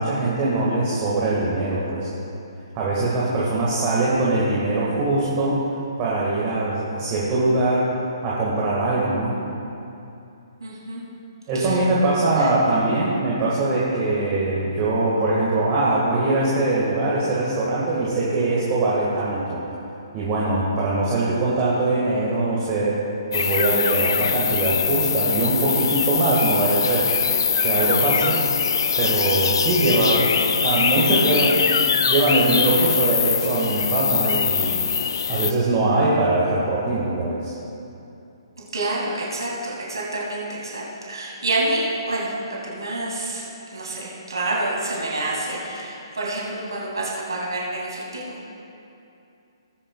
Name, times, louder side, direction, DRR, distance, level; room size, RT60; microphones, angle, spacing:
voice 1, 0.0-2.1 2.7-5.6 6.0-7.9 8.2-9.4 11.5-19.6 20.1-23.0 23.3-28.4 29.0-30.3 30.6-31.7 31.9-34.7 35.3-37.5, right 2 dB, 25° right, -7 dB, 1.9 m, -22 dB
voice 2, 10.6-11.0 11.5-11.8 12.4-12.5 38.7-42.4 42.6-48.5, right 2 dB, 65° right, -5 dB, 2.8 m, -28 dB
sound 1, 23.3-35.5, left 6 dB, 50° left, 0.4 m, -22 dB
18.5 x 9.8 x 2.4 m, 2.7 s
figure-of-eight pair, 130°, 3 cm